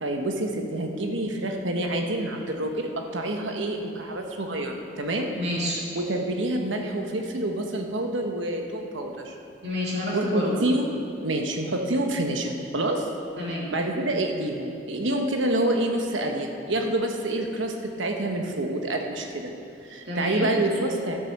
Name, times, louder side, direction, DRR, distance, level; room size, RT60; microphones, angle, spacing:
voice 1, 0.0-5.3 5.9-9.4 10.1-13.1 13.7-19.5 19.8-21.2, right 1 dB, 75° right, 3 dB, 1.2 m, -27 dB
voice 2, 5.3-5.9 9.6-10.5 13.4-13.7 20.0-20.5, left 1 dB, 60° right, -4 dB, 2.6 m, -29 dB
12.0 x 8.9 x 6.6 m, 2.5 s
head